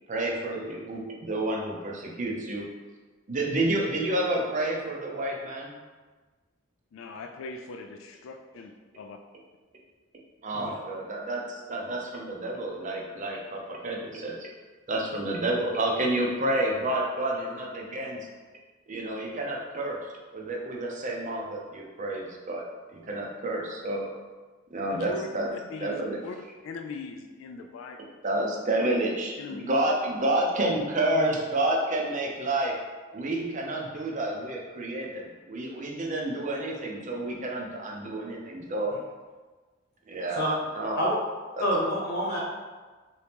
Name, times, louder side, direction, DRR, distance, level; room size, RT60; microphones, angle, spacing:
voice 1, 0.1-2.6 3.3-5.7 10.4-14.5 14.9-18.3 18.9-20.0 20.3-22.6 22.9-24.1 24.7-25.5 25.8-26.2 28.2-32.7 33.1-38.9 40.1-41.1 41.5-41.6, right 1 dB, 40° right, -1 dB, 0.6 m, -29 dB
voice 2, 6.9-9.2 24.9-26.4 26.6-28.1 28.4-28.5 28.8-28.9 29.4-29.8, left 3 dB, 80° left, 4 dB, 0.3 m, -40 dB
voice 3, 41.6-42.4, equal, 55° left, -6 dB, 0.9 m, -27 dB
3.0 x 2.8 x 3.4 m, 1.3 s
head